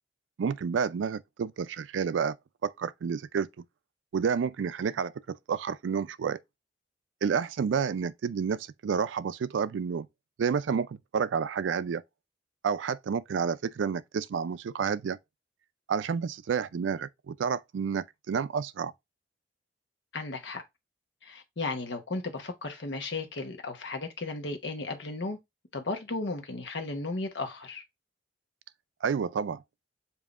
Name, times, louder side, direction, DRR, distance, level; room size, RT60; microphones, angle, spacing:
voice 1, 0.4-2.4 2.6-3.6 4.1-6.4 7.2-10.1 10.4-12.0 12.6-15.2 15.9-18.9 29.0-29.6, right 6 dB, 90° right, 0.4 m, -30 dB
voice 2, 20.1-20.6 21.2-25.4 25.7-27.8, left 3 dB, 70° left, 1.0 m, -35 dB
7.0 x 2.7 x 2.4 m
head